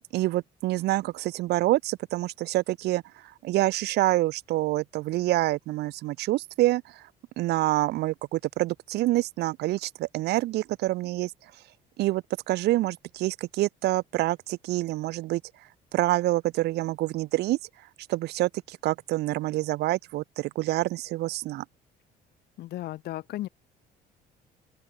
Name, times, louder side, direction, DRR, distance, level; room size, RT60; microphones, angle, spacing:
voice 1, 0.1-3.0 3.4-7.0 7.4-11.3 12.0-15.4 15.9-17.6 18.1-21.6, right 17 dB, 75° right, 1.0 m, -27 dB
voice 2, 22.6-23.5, left 15 dB, 70° left, 2.3 m, -35 dB
open air
cardioid pair, 110°, 17 cm